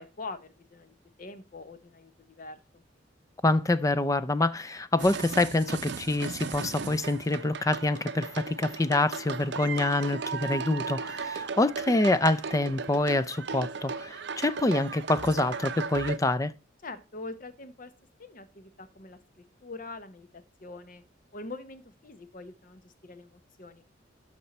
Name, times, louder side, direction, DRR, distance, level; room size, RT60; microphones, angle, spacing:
voice 1, 0.0-2.8 16.8-17.9 18.2-21.0 21.3-23.8, left 3 dB, 45° left, 0.9 m, -44 dB
voice 2, 3.4-16.5, left 2 dB, 15° left, 0.4 m, -26 dB
sound 1, 5.0-16.2, right 5 dB, 65° right, 0.7 m, -36 dB
12.5 x 4.4 x 4.2 m
head